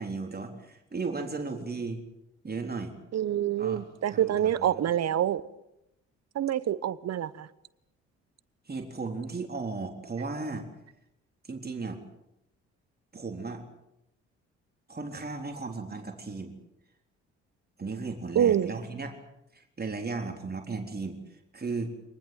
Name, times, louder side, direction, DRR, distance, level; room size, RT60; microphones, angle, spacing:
voice 1, 0.0-2.0 2.4-2.9 3.6-4.8 8.7-10.7 11.4-12.0 13.1-13.6 14.9-16.5 17.8-19.2 19.5-21.2 21.5-21.9, right 4 dB, 25° right, 3.9 m, -35 dB
voice 2, 3.1-5.4 6.3-7.5 18.3-18.7, right 10 dB, 50° right, 1.2 m, -26 dB
26.0 x 19.5 x 7.9 m
hypercardioid pair, 50°, 34 cm